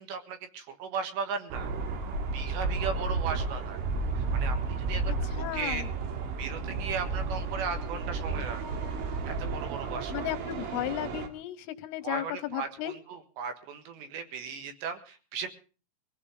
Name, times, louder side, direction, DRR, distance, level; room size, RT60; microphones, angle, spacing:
voice 1, 0.0-1.7 2.3-3.8 4.2-5.0 5.3-5.9 6.4-8.6 9.3-10.3 12.0-15.5, right 5 dB, 70° right, 7 dB, 3.6 m, -36 dB
sound 1, 1.5-11.3, right 3 dB, 85° right, 4.6 m, -32 dB
voice 2, 5.1-5.9 10.1-12.9, left 14 dB, 90° left, 12 dB, 3.7 m, -35 dB
22.5 x 16.0 x 3.7 m, 0.37 s
omnidirectional pair, 5.6 m